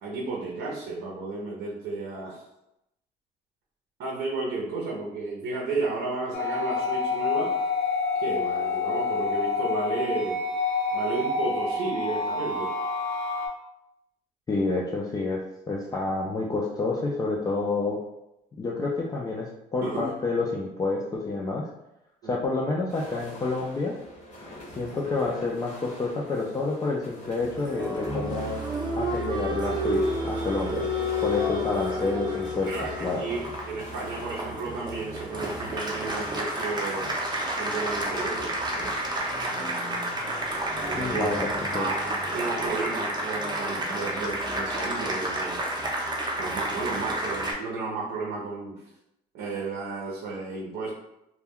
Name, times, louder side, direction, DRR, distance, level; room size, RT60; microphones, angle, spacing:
voice 1, 0.0-2.4 4.0-7.5 8.2-10.4 10.9-12.7 19.8-20.1 22.2-22.4 32.7-33.4 33.7-37.1 37.5-38.9 40.7-41.4 41.7-45.6 46.4-48.8 49.3-50.9, right 3 dB, 75° right, -3 dB, 0.7 m, -33 dB
sound 1, 6.3-13.5, left 4 dB, 85° left, 0.8 m, -28 dB
voice 2, 14.5-15.4 15.7-18.0 18.6-21.7 22.2-24.0 24.8-28.6 28.9-30.9 31.2-32.7 33.0-33.2 40.9-41.4 41.7-41.9, left 3 dB, 20° left, -3 dB, 0.3 m, -28 dB
sound 2, 22.9-42.7, left 1 dB, 45° left, 0.8 m, -46 dB
Applause, 27.5-47.5, equal, 25° right, 0.6 m, -30 dB
2.2 x 2.1 x 3.5 m, 0.87 s
cardioid pair, 110°, 17 cm